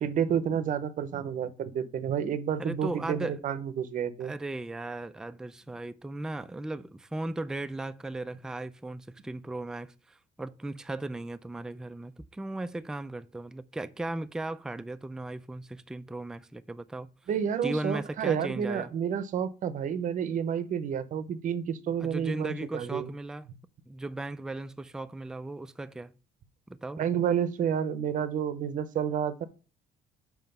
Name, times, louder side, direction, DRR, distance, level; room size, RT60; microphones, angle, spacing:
voice 1, 0.0-4.3 17.3-23.1 27.0-29.5, right 8 dB, 50° right, 0.7 m, -30 dB
voice 2, 2.6-3.4 4.2-17.1 17.6-18.9 22.0-23.5 23.9-26.1 26.7-27.0, right 2 dB, 5° right, 0.4 m, -37 dB
5.8 x 4.5 x 5.3 m
cardioid pair, 110°, 17 cm